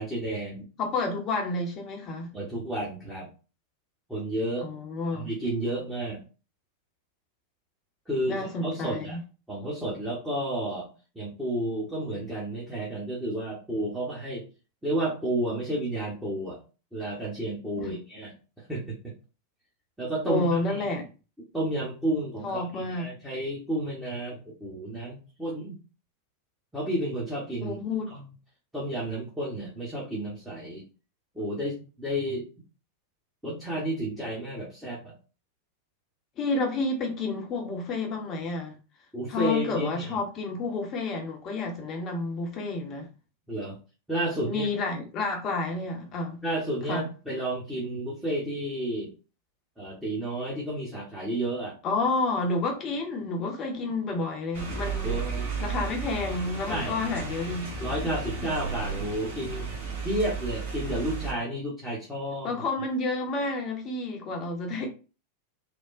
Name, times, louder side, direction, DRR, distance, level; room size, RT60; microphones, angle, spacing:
voice 1, 0.0-0.6 2.3-3.3 4.1-4.7 5.1-6.2 8.1-9.2 9.5-10.9 11.1-14.4 14.8-16.6 16.9-18.3 18.7-19.0 20.0-20.9 21.5-25.8 26.7-27.8 28.1-28.3 28.7-30.8 31.3-32.5 33.4-35.1 39.1-40.2 43.5-43.8 44.1-44.7 46.4-49.1 49.8-51.8 55.0-55.5 56.7-57.0 57.8-59.7 60.0-62.5 64.7-64.9, right 1 dB, 5° right, 1.2 m, -31 dB
voice 2, 0.8-2.3 4.6-5.3 8.3-9.2 17.8-18.0 20.3-21.1 22.4-23.2 27.6-28.1 36.4-38.8 39.3-43.1 44.4-46.4 46.9-47.1 51.8-55.2 55.6-57.8 62.4-64.9, left 3 dB, 30° left, 0.9 m, -30 dB
sound 1, 54.5-61.3, right 4 dB, 55° right, 1.2 m, -33 dB
3.4 x 2.2 x 2.5 m
figure-of-eight pair, 90°, 0 cm